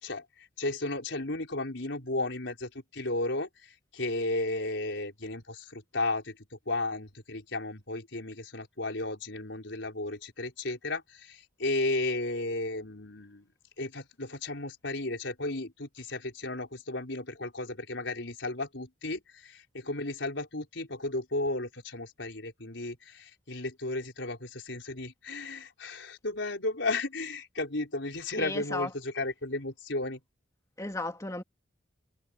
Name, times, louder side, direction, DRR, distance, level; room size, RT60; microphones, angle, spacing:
voice 1, 0.0-3.5 3.9-6.4 6.7-13.5 13.8-30.2, left 2 dB, 75° left, 4.7 m, -34 dB
voice 2, 28.4-28.9 30.8-31.4, left 2 dB, 15° left, 2.6 m, -34 dB
head